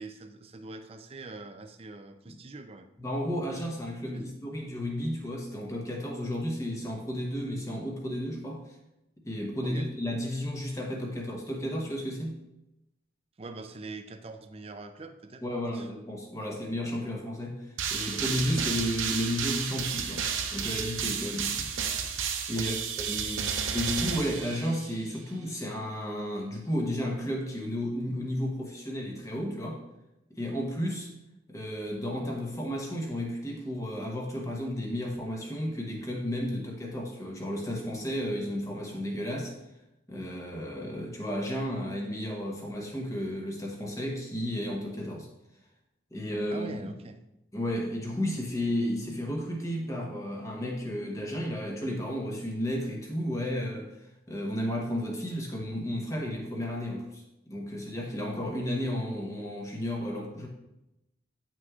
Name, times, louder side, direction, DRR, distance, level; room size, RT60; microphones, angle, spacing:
voice 1, 0.0-2.9 4.1-4.3 9.6-9.9 13.4-15.9 16.4-16.8 22.6-22.8 46.5-47.2, right 2 dB, 30° right, 8 dB, 0.5 m, -43 dB
voice 2, 3.0-8.6 9.2-12.4 15.4-20.2 20.5-21.7 22.5-29.8 30.3-31.1 31.5-39.5 40.1-45.3 46.1-46.9 47.5-53.9 54.3-60.5, equal, 15° left, 0 dB, 1.0 m, -33 dB
sound 1, 17.8-25.0, right 7 dB, 80° right, 0.7 m, -32 dB
9.2 x 6.0 x 2.4 m, 0.90 s
head